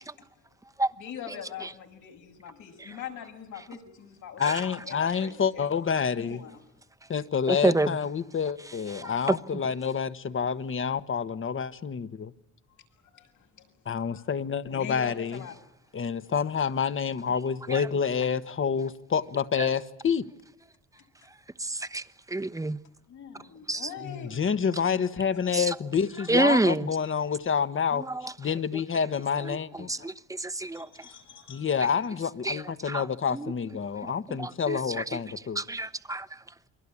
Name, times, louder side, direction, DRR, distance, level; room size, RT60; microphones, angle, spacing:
voice 1, 0.8-5.8 6.2-6.6 13.1-14.3 14.7-15.5 20.9-21.0 23.1-24.4 29.4-29.5 30.8-31.7, left 8 dB, 80° left, 6.5 m, -43 dB
voice 2, 4.4-6.4 7.1-12.3 13.8-15.4 15.9-20.2 24.0-28.1 28.4-30.1 31.5-35.6, left 6 dB, 45° left, 1.5 m, -28 dB
voice 3, 7.5-7.9 9.0-9.1 19.6-19.7 21.6-22.0 22.3-22.8 23.7-23.9 25.5-25.6 26.3-26.9 29.9-30.1 30.4-30.8 32.5-32.6 32.9-33.0 33.3-33.5 34.4-35.0 35.6-36.3, right 2 dB, 10° right, 1.1 m, -27 dB
29.0 x 23.0 x 8.6 m
cardioid pair, 90°, 30 cm